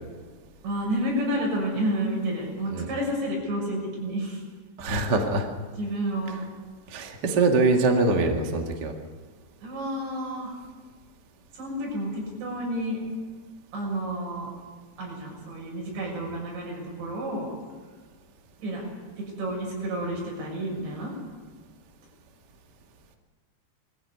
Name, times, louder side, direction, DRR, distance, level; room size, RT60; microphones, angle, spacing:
voice 1, 0.6-4.4 5.7-6.4 9.6-10.6 11.5-13.0 13.7-14.5 15.0-17.5 18.6-18.8 19.2-21.1, right 1 dB, 70° right, -2 dB, 8.7 m, -30 dB
voice 2, 4.8-5.5 6.9-8.9, right 3 dB, 45° right, 2 dB, 1.3 m, -23 dB
21.5 x 14.5 x 9.6 m, 1.5 s
omnidirectional pair, 5.3 m